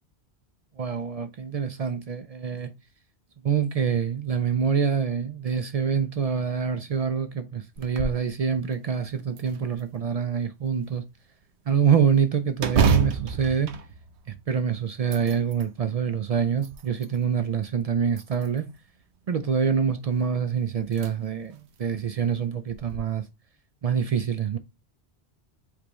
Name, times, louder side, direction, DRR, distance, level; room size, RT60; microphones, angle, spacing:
voice 1, 0.8-2.7 3.4-11.1 11.7-13.7 14.5-18.7 19.3-23.2 23.8-24.6, right 7 dB, 55° right, 0.4 m, -26 dB
sound 1, 7.8-8.3 8.7-8.8 9.4-10.2 12.6-14.6 15.0-15.7 16.3-17.2 18.1-18.8 20.2-20.3 20.9-21.1 21.6-21.7 22.7-23.0, right 6 dB, 90° right, 1.0 m, -28 dB
5.0 x 3.5 x 3.0 m
omnidirectional pair, 1.1 m